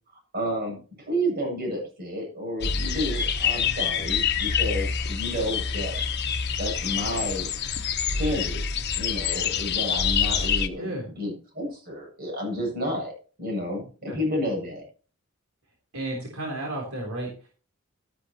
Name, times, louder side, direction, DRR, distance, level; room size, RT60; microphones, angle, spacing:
voice 1, 0.3-6.0 6.6-7.5 8.1-8.6 8.9-13.1 13.4-14.8, equal, 45° right, 1 dB, 7.5 m, -31 dB
sound 1, 2.6-10.7, left 6 dB, 50° left, 1.1 m, -26 dB
voice 2, 15.9-17.5, right 1 dB, 75° right, -1 dB, 3.6 m, -33 dB
13.5 x 11.0 x 3.0 m, 0.36 s
head